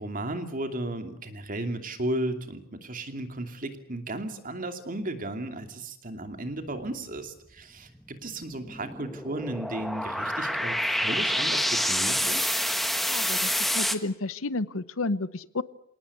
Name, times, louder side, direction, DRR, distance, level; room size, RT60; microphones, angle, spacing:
voice 1, 0.0-12.4, right 1 dB, 40° right, 7 dB, 2.8 m, -34 dB
sound 1, 6.3-6.4 6.6-6.8 7.9-13.9, equal, ahead, 1.5 m, -28 dB
voice 2, 13.1-15.6, left 2 dB, 70° left, 16 dB, 0.9 m, -31 dB
27.0 x 18.5 x 8.4 m, 0.74 s
head